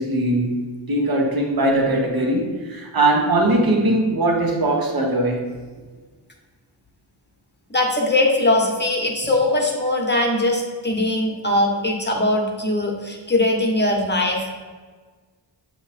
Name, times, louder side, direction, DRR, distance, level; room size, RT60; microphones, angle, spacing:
voice 1, 0.0-5.5, right 1 dB, 50° right, 0 dB, 1.1 m, -20 dB
voice 2, 7.7-14.5, left 1 dB, 25° left, 1 dB, 1.1 m, -21 dB
7.6 x 3.0 x 4.2 m, 1.4 s
wide cardioid pair, 55°, 46 cm